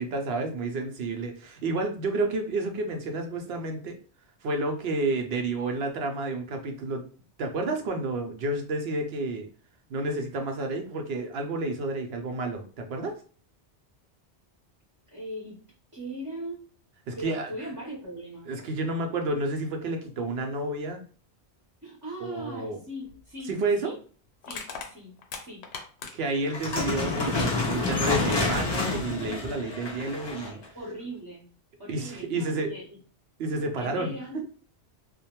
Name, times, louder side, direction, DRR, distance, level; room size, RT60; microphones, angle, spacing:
voice 1, 0.0-4.0 4.4-7.0 7.4-9.5 9.9-13.1 17.1-17.5 18.5-21.0 22.2-22.8 23.5-23.9 26.1-30.8 31.9-32.7 33.4-34.4, right 2 dB, 70° right, 4 dB, 0.7 m, -30 dB
voice 2, 15.1-15.6 15.9-16.6 17.1-18.5 21.8-24.0 24.4-25.1 25.4-25.6 26.3-26.4 30.7-31.5 31.8-33.0 33.8-34.5, right 1 dB, 20° right, -5 dB, 0.7 m, -39 dB
Crushing, 23.1-23.2 24.4-26.4 27.6-27.7 28.1-28.5, left 5 dB, 85° left, 0.9 m, -39 dB
sound 1, 26.5-30.6, left 3 dB, 40° left, 0.3 m, -28 dB
2.5 x 2.1 x 2.8 m, 0.41 s
omnidirectional pair, 1.1 m